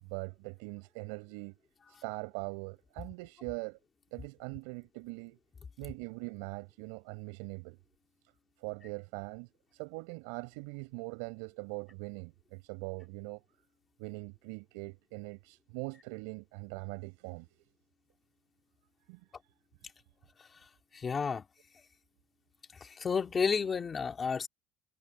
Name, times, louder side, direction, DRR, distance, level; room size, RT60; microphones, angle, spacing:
voice 1, 0.0-1.6 2.0-3.8 4.1-5.4 5.8-7.8 8.6-13.4 14.0-17.5 19.1-19.4, right 31 dB, 80° right, 7.2 m, -42 dB
voice 2, 20.9-21.4 22.8-24.5, left 5 dB, 20° left, 2.3 m, -31 dB
cardioid pair, 165°, 0 cm